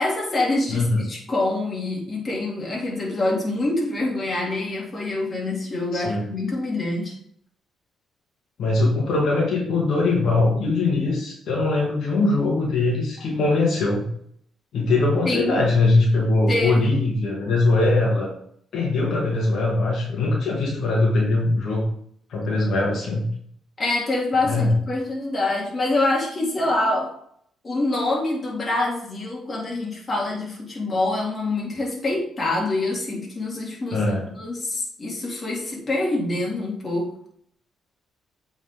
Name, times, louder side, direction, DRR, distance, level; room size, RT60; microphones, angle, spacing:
voice 1, 0.0-7.1 15.2-15.6 16.5-17.0 23.8-27.2 27.6-34.1 34.3-37.1, left 2 dB, 35° left, -2 dB, 3.0 m, -25 dB
voice 2, 0.7-1.1 5.9-6.3 8.6-14.1 14.7-18.3 18.7-21.9 22.3-23.3 24.4-24.8 33.9-34.3, left 2 dB, 70° left, -2 dB, 2.2 m, -21 dB
8.5 x 4.8 x 3.8 m, 0.65 s
cardioid pair, 90°, 0 cm